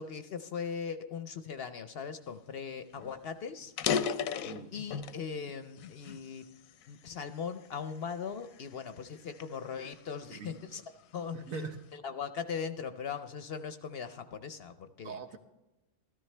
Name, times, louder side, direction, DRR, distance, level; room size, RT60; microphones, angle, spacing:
voice 1, 0.0-3.7 4.7-6.5 6.9-10.8 11.1-11.4 12.0-15.2, left 6 dB, 60° left, 10 dB, 0.7 m, -39 dB
sound 1, 2.6-2.7 3.0-3.1 3.6-5.2 5.8-7.1 7.6-7.9 8.5-10.6, left 7 dB, 85° left, 1.1 m, -35 dB
voice 2, 10.3-10.8 11.3-11.8 15.0-15.4, right 4 dB, 85° right, 7 dB, 1.4 m, -42 dB
13.5 x 13.5 x 3.3 m, 1.0 s
omnidirectional pair, 1.4 m